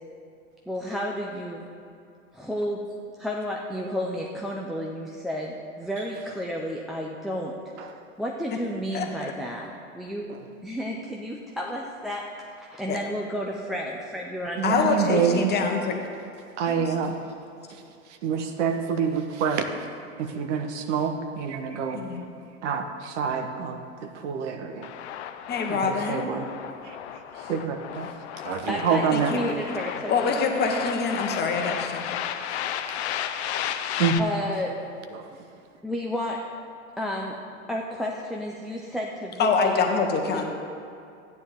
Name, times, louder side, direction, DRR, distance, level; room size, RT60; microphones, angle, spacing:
voice 1, 0.7-1.6 2.3-2.8 3.2-7.5 8.2-10.3 10.6-12.2 12.6-14.8 28.7-29.0 29.3-30.7 34.2-34.7 35.8-36.4 37.0-37.4 37.7-39.9, equal, ahead, -3 dB, 0.5 m, -31 dB
voice 2, 8.9-9.3 12.9-13.0 14.6-15.9 16.7-16.8 21.9-22.3 25.5-26.3 29.1-29.2 30.1-32.6 39.4-40.4, left 4 dB, 25° left, 3 dB, 1.3 m, -25 dB
voice 3, 14.6-15.5 16.6-17.2 17.7-17.8 18.2-19.9 20.2-22.0 22.6-24.9 25.7-26.5 26.8-27.0 27.4-28.1 28.4-29.3 34.0-34.5 35.1-35.4, right 6 dB, 60° right, 6 dB, 1.1 m, -27 dB
sound 1, 24.8-34.2, left 10 dB, 55° left, 0.7 m, -33 dB
13.5 x 9.4 x 3.6 m, 2.5 s
hypercardioid pair, 105°, 40 cm